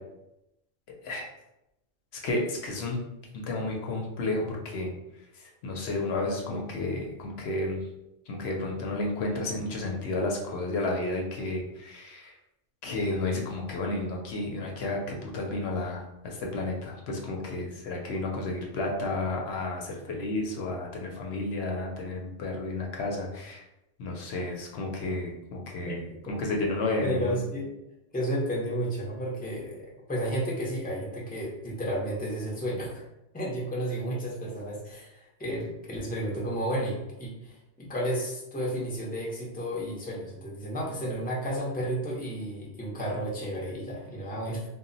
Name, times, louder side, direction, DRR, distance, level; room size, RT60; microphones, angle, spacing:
voice 1, 2.2-3.0 3.3-4.9 5.4-7.8 8.3-12.3 12.8-23.6 24.0-27.4, left 2 dB, 65° left, 0 dB, 0.8 m, -32 dB
voice 2, 25.8-26.3 27.0-27.7 28.1-33.0 33.3-44.6, right 1 dB, 10° left, -4 dB, 0.4 m, -32 dB
2.1 x 2.0 x 3.8 m, 0.89 s
omnidirectional pair, 1.2 m